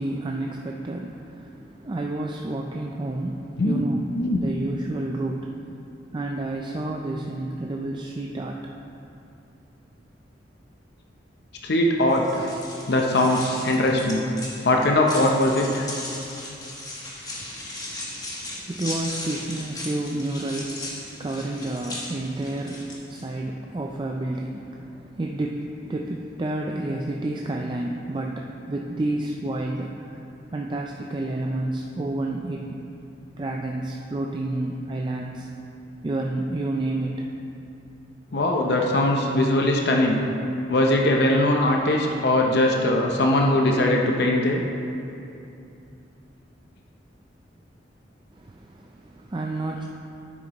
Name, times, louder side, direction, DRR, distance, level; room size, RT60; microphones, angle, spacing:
voice 1, 0.0-4.0 4.4-5.5 6.1-8.6 17.4-30.1 30.5-32.8 33.4-35.5 36.0-37.3 48.4-49.8, right 2 dB, 25° right, 0 dB, 0.4 m, -30 dB
voice 2, 11.6-12.5 12.9-14.2 14.6-15.9 38.3-40.2 40.7-44.6, left 1 dB, 65° left, 1 dB, 0.7 m, -21 dB
sound 1, 12.1-23.2, left 2 dB, 20° left, 1.3 m, -37 dB
10.5 x 8.4 x 3.0 m, 2.7 s
head